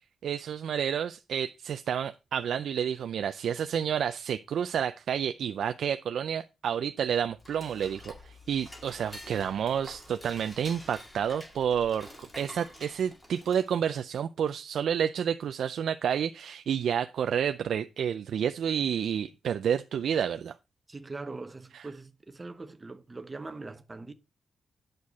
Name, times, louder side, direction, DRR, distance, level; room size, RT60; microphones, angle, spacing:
voice 1, 0.2-20.6 21.7-21.9, right 8 dB, 70° right, 0.4 m, -30 dB
Dishes pots and pans / Cutlery silverware, 7.1-13.9, left 1 dB, 15° left, 1.8 m, -48 dB
voice 2, 20.9-24.1, right 3 dB, 20° right, 0.8 m, -42 dB
9.6 x 6.6 x 4.1 m
wide cardioid pair, 180°, 0 cm